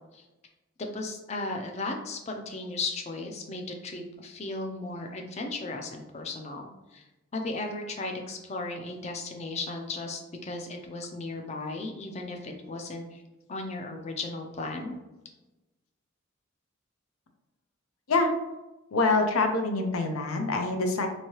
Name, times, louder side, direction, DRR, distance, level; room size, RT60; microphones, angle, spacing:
voice 1, 0.8-7.0 7.3-13.2 13.5-14.9, left 2 dB, 30° left, 3 dB, 0.4 m, -36 dB
voice 2, 18.9-21.1, left 3 dB, 90° left, 5 dB, 0.5 m, -25 dB
3.0 x 2.7 x 2.9 m, 1.0 s
head